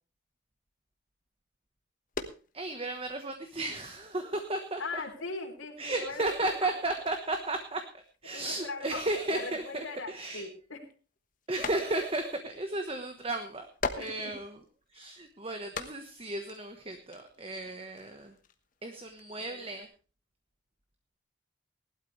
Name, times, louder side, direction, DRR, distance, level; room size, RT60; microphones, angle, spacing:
sound 1, 2.1-2.8 3.1-4.7 5.2-5.4 5.6-5.8 6.1-6.2 6.5-10.5 10.9-12.3 12.6-12.7 13.5-15.0 15.6-19.8, left 4 dB, 40° left, 1.2 m, -43 dB
voice 1, 2.5-5.0 5.8-10.4 11.5-13.7 14.0-14.5 14.9-18.3 18.8-19.9, right 2 dB, 30° right, 6 dB, 1.2 m, -34 dB
voice 2, 4.8-6.7 8.3-9.0 9.3-10.9 13.9-14.4 14.9-15.1, left 3 dB, 85° left, 2 dB, 3.4 m, -40 dB
19.0 x 12.0 x 3.2 m, 0.36 s
head